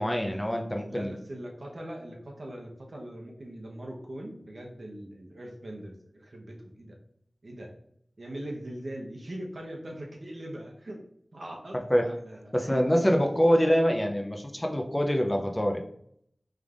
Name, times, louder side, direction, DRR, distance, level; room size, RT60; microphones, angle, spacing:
voice 1, 0.0-1.1 11.9-12.1 12.5-15.8, equal, 20° left, 3 dB, 0.6 m, -25 dB
voice 2, 0.9-6.9 7.4-7.7 8.2-11.0 11.3-13.2, right 1 dB, 65° right, 0 dB, 0.9 m, -41 dB
5.1 x 3.3 x 2.5 m, 0.69 s
wide cardioid pair, 65°, 0 cm